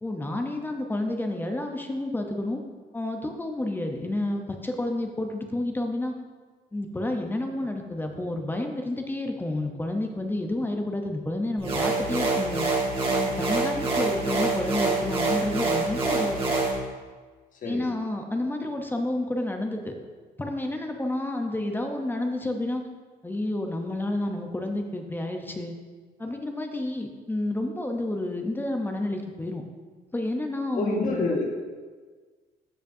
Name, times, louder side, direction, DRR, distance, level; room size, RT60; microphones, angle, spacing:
voice 1, 0.0-2.6 2.9-6.1 6.7-12.6 13.1-16.4 17.6-19.9 20.4-22.8 23.2-25.7 26.2-29.6 30.1-31.4, left 1 dB, 10° left, 3 dB, 0.7 m, -30 dB
sound 1, 11.6-16.7, right 3 dB, 30° right, 1.8 m, -26 dB
voice 2, 30.7-31.5, left 3 dB, 50° left, 0 dB, 1.6 m, -28 dB
13.5 x 5.2 x 2.7 m, 1.4 s
cardioid pair, 110°, 17 cm